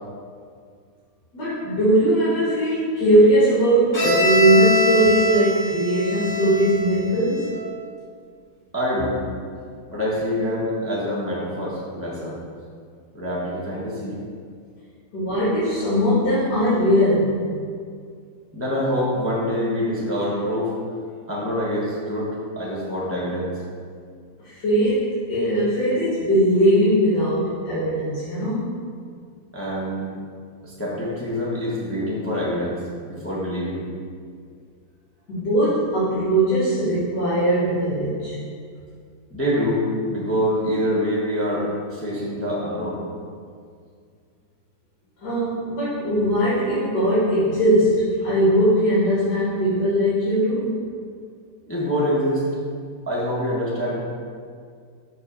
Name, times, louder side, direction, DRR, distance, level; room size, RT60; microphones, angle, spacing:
voice 1, 1.3-7.5 15.1-17.4 24.4-28.8 35.3-38.4 45.2-50.8, right 1 dB, 50° left, -11 dB, 2.4 m, -20 dB
Bowed string instrument, 3.9-7.7, left 1 dB, 35° left, 2.2 m, -24 dB
voice 2, 8.7-9.2 9.9-12.4 13.1-14.2 18.5-20.7 21.3-23.6 29.5-30.1 30.6-33.8 39.3-43.0 51.7-52.4 53.1-54.0, equal, 10° left, -7 dB, 0.9 m, -25 dB
6.4 x 3.9 x 6.1 m, 2.2 s
omnidirectional pair, 2.4 m